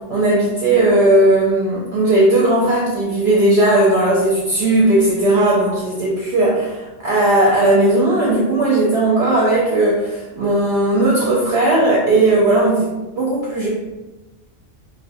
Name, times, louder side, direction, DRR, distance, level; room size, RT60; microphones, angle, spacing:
voice 1, 0.1-12.9 13.2-13.7, right 2 dB, 65° right, -5 dB, 0.7 m, -16 dB
2.3 x 2.1 x 2.6 m, 1.1 s
omnidirectional pair, 1.3 m